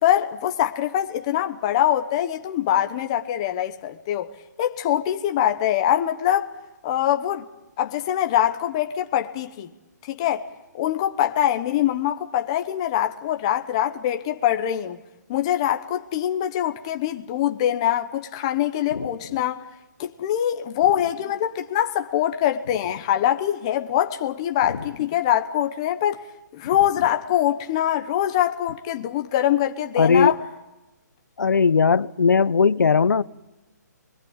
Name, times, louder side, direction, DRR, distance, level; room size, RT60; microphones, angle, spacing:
voice 1, 0.0-4.3 4.6-6.5 6.8-7.5 7.8-9.7 10.0-10.5 10.7-15.0 15.3-19.6 20.0-26.2 26.5-30.4, left 11 dB, 15° left, 0.9 m, -23 dB
voice 2, 30.0-30.3 31.4-33.2, left 5 dB, 85° left, 0.9 m, -18 dB
28.5 x 22.0 x 8.7 m
hypercardioid pair, 175°, 10 cm